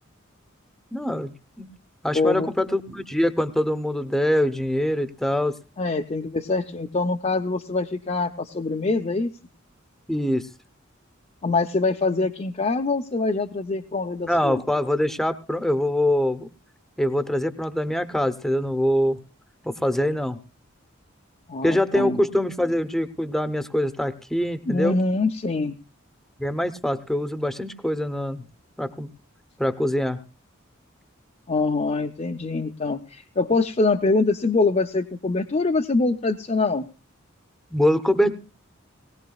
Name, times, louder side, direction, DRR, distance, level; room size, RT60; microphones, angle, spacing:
voice 1, 0.9-1.7 2.0-5.5 10.1-10.4 14.3-16.5 17.0-19.2 19.6-20.4 21.6-25.0 26.4-28.4 28.8-29.1 29.6-30.2 37.7-38.4, left 1 dB, ahead, 12 dB, 0.8 m, -24 dB
voice 2, 2.1-2.5 5.8-9.3 11.4-14.6 21.5-22.2 24.7-25.8 31.5-36.9, left 3 dB, 35° left, 4 dB, 0.6 m, -24 dB
19.5 x 18.0 x 2.3 m, 0.32 s
head